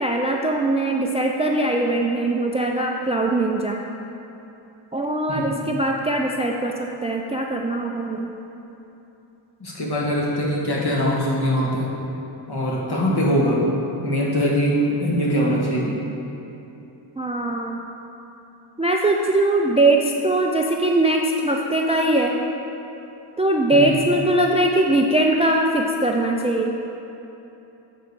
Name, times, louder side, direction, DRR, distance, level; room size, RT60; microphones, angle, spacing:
voice 1, 0.0-3.8 4.9-8.3 17.2-17.8 18.8-22.3 23.4-26.7, right 2 dB, 15° right, 1 dB, 0.3 m, -21 dB
voice 2, 9.6-11.9 12.5-13.7 14.0-16.0 23.7-24.1, equal, 55° left, -4 dB, 1.5 m, -22 dB
7.9 x 4.9 x 4.6 m, 3.0 s
wide cardioid pair, 110°, 48 cm